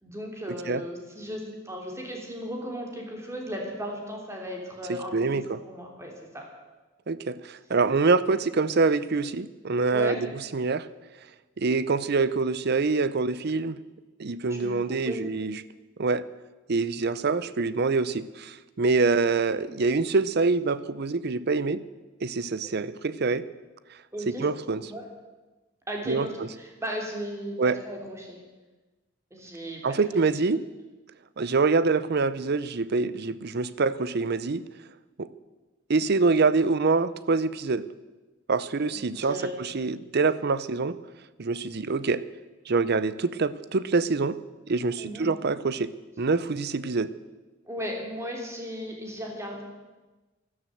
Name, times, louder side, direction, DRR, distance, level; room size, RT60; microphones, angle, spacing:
voice 1, 0.0-6.5 9.9-10.2 14.5-15.2 24.1-24.4 24.9-25.0 25.9-28.4 29.3-30.0 38.9-39.6 45.0-45.3 47.6-49.6, equal, 15° right, 0 dB, 3.2 m, -36 dB
voice 2, 4.9-5.6 7.1-10.3 10.5-10.9 11.6-13.8 14.2-15.6 16.0-16.3 16.7-21.8 22.2-23.5 24.4-24.8 26.1-26.3 27.6-27.8 29.8-30.6 31.4-34.6 35.2-35.3 35.9-37.9 38.5-41.0 41.4-42.2 42.7-44.4 44.7-45.9 46.2-47.1, right 4 dB, 55° right, 16 dB, 0.6 m, -25 dB
12.5 x 12.0 x 7.8 m, 1.2 s
head